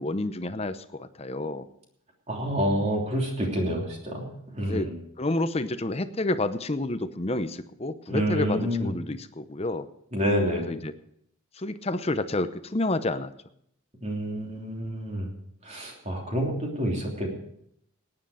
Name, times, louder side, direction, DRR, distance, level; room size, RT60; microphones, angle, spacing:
voice 1, 0.0-1.7 4.6-4.9 5.2-9.9 10.5-10.9 11.6-13.3, left 2 dB, 30° left, 11 dB, 0.7 m, -29 dB
voice 2, 2.3-4.3 4.5-4.9 8.1-8.9 10.1-10.7 14.0-15.3 15.6-17.3, equal, 30° right, 0 dB, 3.1 m, -28 dB
17.5 x 9.8 x 5.0 m, 0.71 s
head